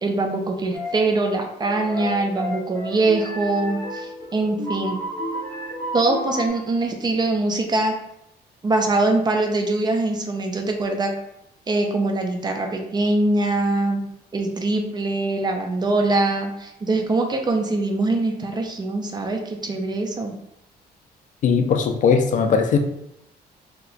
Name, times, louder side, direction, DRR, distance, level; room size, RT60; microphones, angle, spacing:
voice 1, 0.0-5.0 5.9-8.0 8.6-11.1 11.7-14.0 14.3-20.3, right 2 dB, 25° right, 3 dB, 0.5 m, -23 dB
sound 1, 0.7-1.2 1.6-6.5, equal, 15° left, 0.7 m, -31 dB
voice 2, 21.4-22.8, left 6 dB, 50° left, 6 dB, 0.4 m, -19 dB
2.9 x 2.2 x 4.0 m, 0.79 s
cardioid pair, 130°, 17 cm